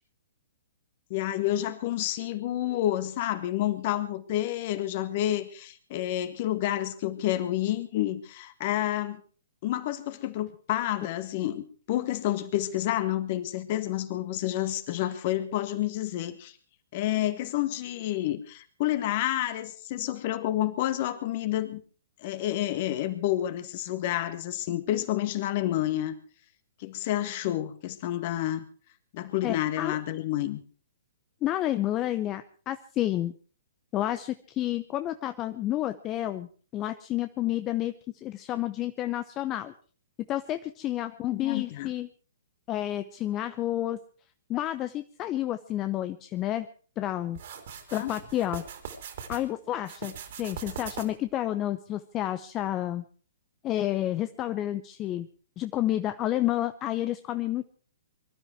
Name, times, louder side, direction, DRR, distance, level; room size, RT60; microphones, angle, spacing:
voice 1, 1.1-9.2 9.6-16.6 16.9-21.8 22.2-26.2 26.8-28.6 29.1-30.6 41.2-41.9 47.9-48.1, left 13 dB, 40° left, 11 dB, 1.8 m, -29 dB
voice 2, 29.4-30.0 31.4-33.3 33.9-39.7 40.3-42.1 42.7-44.0 44.5-46.7 47.0-47.4 47.9-48.6 49.3-53.0 53.6-55.3 55.6-57.7, left 13 dB, 25° left, 11 dB, 0.7 m, -30 dB
sound 1, 47.4-49.4 49.8-51.3, right 7 dB, 55° right, 3.4 m, -41 dB
23.5 x 12.5 x 4.7 m, 0.41 s
figure-of-eight pair, 120°, 0 cm